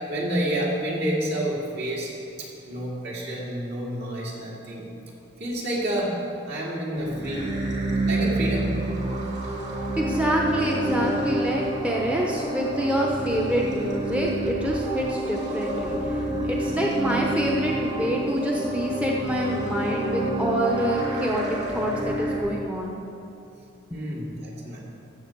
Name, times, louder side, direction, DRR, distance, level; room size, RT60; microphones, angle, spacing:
voice 1, 0.1-2.1 2.4-4.9 5.4-6.2 6.5-7.6 8.1-8.8 9.4-9.5 23.9-24.8, right 1 dB, 60° right, -4 dB, 2.4 m, -29 dB
sound 1, 7.0-22.4, right 1 dB, 40° right, 2.4 m, -28 dB
voice 2, 10.0-23.0 23.9-24.0, right 1 dB, 5° right, -2 dB, 0.8 m, -26 dB
15.0 x 7.1 x 4.6 m, 2.6 s
head